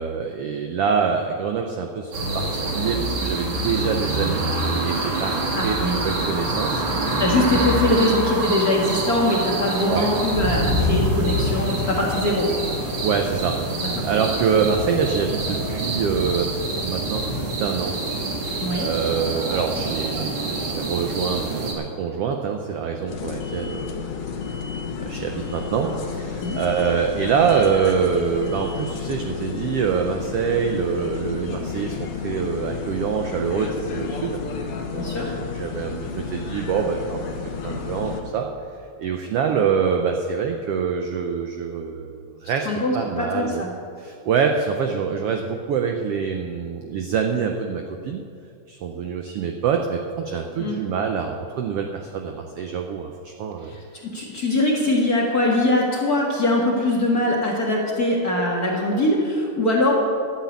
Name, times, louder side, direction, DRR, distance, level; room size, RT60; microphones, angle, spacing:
voice 1, 0.0-4.4 4.8-6.8 7.5-7.6 9.9-10.1 13.0-16.5 16.8-17.9 18.8-24.0 25.0-34.4 34.9-37.2 37.6-38.5 39.0-43.7 44.0-48.2 48.7-53.7, right 6 dB, 85° right, 3 dB, 1.3 m, -25 dB
sound 1, 2.1-21.7, right 1 dB, 55° right, 2.8 m, -26 dB
voice 2, 5.5-6.0 7.2-12.5 13.8-13.9 18.6-18.9 26.4-26.6 35.0-35.3 42.6-43.7 50.6-50.8 53.7-59.9, left 1 dB, 40° left, -3 dB, 1.6 m, -22 dB
sound 2, 23.1-38.2, left 5 dB, 60° left, 1.7 m, -31 dB
12.0 x 8.5 x 8.4 m, 2.3 s
omnidirectional pair, 3.7 m